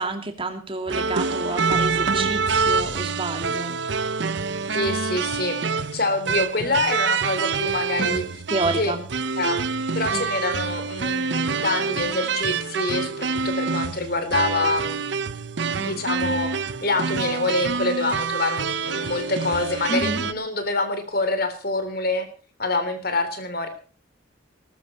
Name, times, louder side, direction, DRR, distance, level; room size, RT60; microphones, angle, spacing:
voice 1, 0.0-3.8 8.5-9.0 10.1-10.3 19.9-20.2, right 2 dB, 30° right, 5 dB, 2.5 m, -29 dB
sound 1, 0.9-20.3, right 5 dB, 65° right, 0.7 m, -26 dB
voice 2, 4.7-8.4 8.7-8.9 9.4-9.6 9.9-15.0 15.8-16.5 16.8-22.3 22.6-23.7, left 2 dB, 50° left, 9 dB, 3.4 m, -26 dB
20.0 x 12.5 x 4.3 m, 0.39 s
head